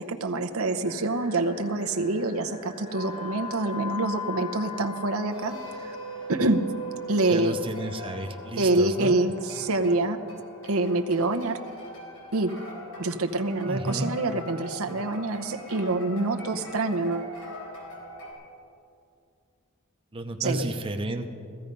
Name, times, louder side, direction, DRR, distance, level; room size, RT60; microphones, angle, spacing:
voice 1, 0.0-6.0 6.3-6.7 7.1-7.6 8.6-10.2 10.7-11.6 12.3-12.5 13.0-17.3 20.4-20.7, right 2 dB, 85° right, 6 dB, 0.9 m, -26 dB
sound 1, 0.8-18.3, left 2 dB, 85° left, 4.4 m, -40 dB
voice 2, 7.3-9.1 13.7-14.1 20.1-21.3, right 1 dB, 25° right, 4 dB, 0.8 m, -31 dB
15.5 x 14.5 x 5.3 m, 2.5 s
head